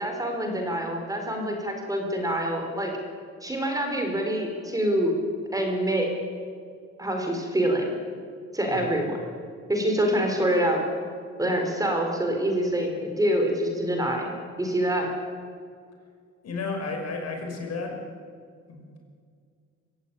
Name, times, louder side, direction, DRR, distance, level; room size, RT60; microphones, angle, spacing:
voice 1, 0.0-2.9 3.4-5.1 5.5-6.1 7.0-7.9 8.5-9.2 9.7-10.8 11.4-15.1, right 1 dB, 10° right, 2 dB, 4.3 m, -26 dB
voice 2, 16.4-18.0 18.7-18.9, left 4 dB, 60° left, 2 dB, 5.9 m, -32 dB
25.0 x 16.0 x 9.9 m, 2.1 s
cardioid pair, 130°, 30 cm